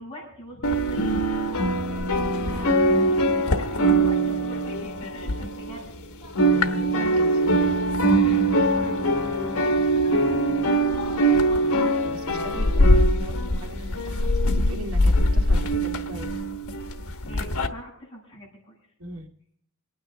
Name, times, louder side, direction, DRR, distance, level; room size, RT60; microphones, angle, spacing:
voice 1, 0.0-1.7 2.3-5.9 7.5-11.7 17.3-18.8, equal, 25° left, -5 dB, 7.8 m, -43 dB
sound 1, 0.6-6.0 6.2-17.7, right 1 dB, 85° left, 1.1 m, -22 dB
voice 2, 6.5-7.7 12.0-16.4 19.0-19.3, equal, 80° right, 1 dB, 2.2 m, -39 dB
27.0 x 9.5 x 3.8 m, 0.65 s
head